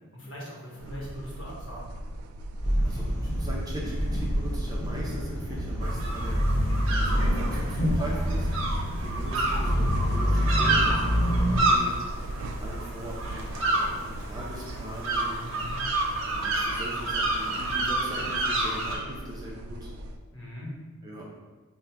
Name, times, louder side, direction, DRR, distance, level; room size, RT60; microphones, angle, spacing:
voice 1, 0.1-1.8 15.4-15.8 20.3-20.7, left 1 dB, 65° left, -5 dB, 1.1 m, -40 dB
sound 1, 0.8-20.2, right 1 dB, 90° right, 0.4 m, -39 dB
sound 2, 2.6-11.6, equal, 15° left, 1.3 m, -27 dB
voice 2, 2.8-6.4 7.0-8.5 9.0-11.9 12.6-15.4 16.2-19.9 21.0-21.3, equal, 20° right, -4 dB, 0.5 m, -40 dB
sound 3, 5.8-19.0, right 2 dB, 65° right, 0.7 m, -29 dB
3.6 x 2.2 x 4.4 m, 1.3 s
head